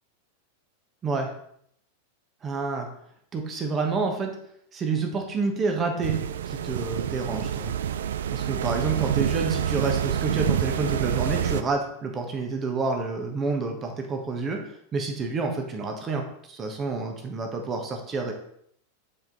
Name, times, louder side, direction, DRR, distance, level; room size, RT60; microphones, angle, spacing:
voice 1, 2.4-2.9 3.3-4.3 4.7-6.2 6.5-7.7 8.3-14.6 14.9-16.2 16.5-18.3, right 4 dB, 25° right, 3 dB, 1.2 m, -28 dB
sound 1, 6.0-11.6, right 10 dB, 60° right, 0.4 m, -27 dB
8.1 x 4.5 x 3.8 m, 0.68 s
figure-of-eight pair, 90°, 0 cm